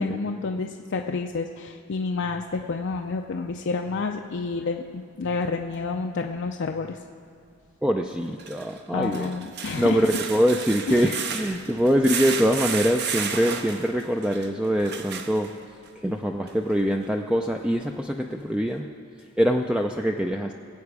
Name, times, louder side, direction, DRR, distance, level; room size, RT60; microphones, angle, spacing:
voice 1, 0.0-7.0 8.9-10.1 10.9-11.2, left 4 dB, 55° left, 3 dB, 0.5 m, -29 dB
sound 1, 5.7-5.8 8.3-15.9 16.5-16.6 17.0-17.1, right 6 dB, 50° right, 0.8 m, -33 dB
voice 2, 7.8-9.3 9.8-15.5 16.0-18.9 19.4-20.5, equal, 5° right, 3 dB, 0.4 m, -24 dB
21.0 x 8.3 x 4.8 m, 2.3 s
head